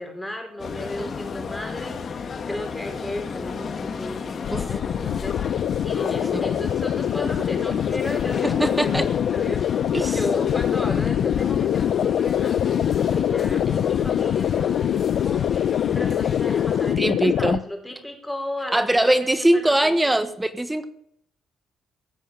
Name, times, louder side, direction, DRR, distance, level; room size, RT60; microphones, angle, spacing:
voice 1, 0.0-5.4 5.8-20.2, left 1 dB, 5° left, 3 dB, 4.8 m, -35 dB
sound 1, 0.6-17.0, left 5 dB, 50° left, 1.6 m, -32 dB
sound 2, 4.4-17.6, left 10 dB, 70° left, 0.6 m, -24 dB
voice 2, 8.4-9.1 9.9-10.2 17.0-17.6 18.7-20.9, right 1 dB, 10° right, 11 dB, 1.3 m, -22 dB
16.5 x 7.2 x 9.1 m, 0.71 s
cardioid pair, 90°, 0 cm